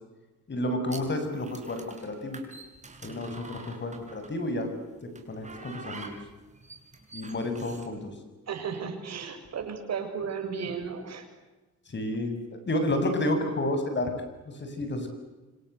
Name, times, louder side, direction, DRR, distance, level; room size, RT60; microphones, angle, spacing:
voice 1, 0.5-2.4 3.0-4.7 5.3-6.2 7.1-8.1 11.9-14.1 14.6-15.1, left 1 dB, 35° left, 7 dB, 7.3 m, -30 dB
sound 1, 0.9-4.5 5.2-7.9, right 3 dB, 25° right, 6.5 m, -46 dB
voice 2, 8.5-11.2, right 6 dB, 60° right, 4 dB, 6.7 m, -34 dB
26.5 x 26.5 x 8.3 m, 1.1 s
cardioid pair, 90°, 30 cm